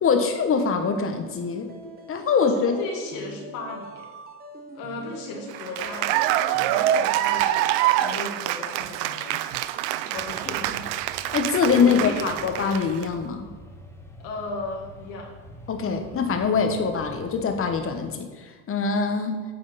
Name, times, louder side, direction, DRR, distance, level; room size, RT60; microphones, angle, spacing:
voice 1, 0.0-1.7 2.1-2.8 11.3-13.5 15.7-19.4, left 5 dB, 25° left, 6 dB, 1.0 m, -23 dB
sound 1, 1.3-8.1, right 2 dB, 20° right, 1.1 m, -44 dB
voice 2, 2.4-4.1 4.7-6.2 6.6-7.7 8.0-9.6 9.9-10.8 11.3-11.4 11.6-12.6 14.2-15.3, left 2 dB, 65° left, 0 dB, 1.8 m, -36 dB
Cheering / Applause, 5.5-13.0, right 12 dB, 60° right, 0.5 m, -25 dB
sound 2, 10.1-18.1, equal, 5° left, 0.9 m, -45 dB
8.7 x 5.0 x 4.1 m, 1.4 s
supercardioid pair, 100°, 48 cm